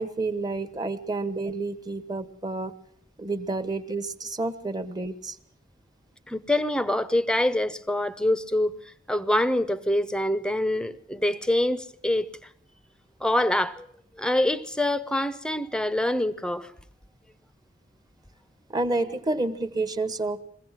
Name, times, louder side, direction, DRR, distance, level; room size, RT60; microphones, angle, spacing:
voice 1, 0.0-2.7 3.2-5.4 18.7-20.4, right 2 dB, 20° right, 1.2 m, -29 dB
voice 2, 6.3-12.3 13.2-13.9 14.2-16.7, left 1 dB, 5° left, 0.8 m, -25 dB
22.5 x 16.0 x 7.5 m
head